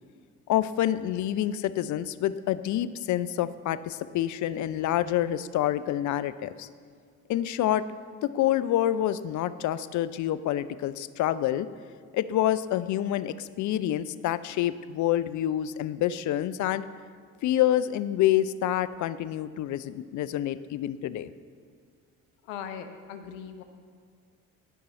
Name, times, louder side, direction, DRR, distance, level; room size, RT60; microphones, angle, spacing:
voice 1, 0.5-6.7 7.3-7.8 8.3-11.7 12.1-16.8 17.4-21.3, left 12 dB, 50° left, 14 dB, 0.5 m, -27 dB
voice 2, 22.5-23.6, left 8 dB, 85° left, 8 dB, 0.7 m, -39 dB
11.5 x 5.4 x 4.2 m, 2.1 s
hypercardioid pair, 55°, 40 cm